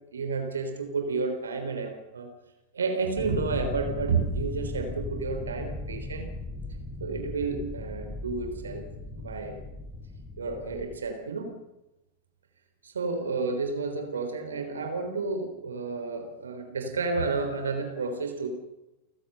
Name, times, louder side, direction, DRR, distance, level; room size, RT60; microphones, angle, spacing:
voice 1, 0.1-2.3 2.7-6.3 7.0-8.8 9.2-9.6 10.4-11.5 12.8-18.5, right 4 dB, 70° right, 6 dB, 3.7 m, -31 dB
sound 1, 3.2-11.0, left 2 dB, 20° left, 4.8 m, -37 dB
29.5 x 15.5 x 6.8 m, 0.95 s
figure-of-eight pair, 90°, 0 cm